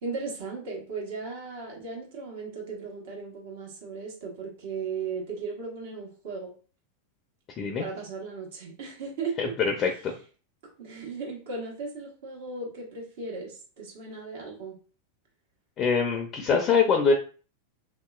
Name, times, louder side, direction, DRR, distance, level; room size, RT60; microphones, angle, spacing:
voice 1, 0.0-6.5 7.8-9.5 10.8-14.8, right 4 dB, 70° right, 0 dB, 1.2 m, -36 dB
voice 2, 9.4-10.1 15.8-17.1, left 5 dB, 35° left, 3 dB, 0.5 m, -24 dB
3.0 x 2.8 x 2.4 m, 0.38 s
hypercardioid pair, 110°, 0 cm